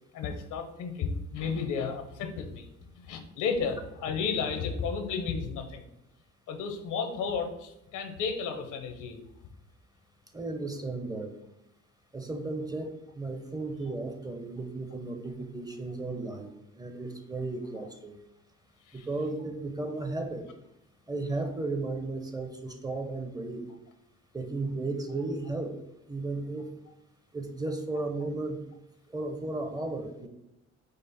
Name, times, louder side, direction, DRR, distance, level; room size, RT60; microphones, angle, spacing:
voice 1, 0.1-2.7 3.0-5.9 6.5-9.2 18.9-19.1, left 5 dB, 85° left, 6 dB, 0.7 m, -33 dB
voice 2, 10.3-11.4 12.1-18.2 18.9-20.5 21.1-23.7 24.3-25.8 26.1-26.7 27.3-28.6 29.1-30.3, right 2 dB, 15° right, 6 dB, 0.5 m, -34 dB
5.1 x 2.1 x 4.0 m, 0.85 s
cardioid pair, 90°, 30 cm